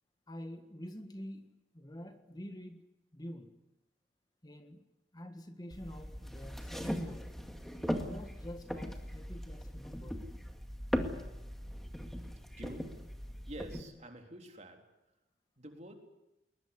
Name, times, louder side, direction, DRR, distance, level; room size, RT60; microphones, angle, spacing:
voice 1, 0.3-1.5 1.7-2.8 3.1-3.5 4.4-4.8 5.1-7.3 7.9-10.4, equal, 20° left, 7 dB, 1.6 m, -46 dB
sound 1, 5.7-13.8, equal, ahead, 2.2 m, -39 dB
voice 2, 12.6-13.1 13.5-14.9 15.6-15.9, right 1 dB, 40° right, 4 dB, 3.7 m, -48 dB
21.5 x 21.0 x 9.9 m, 0.92 s
head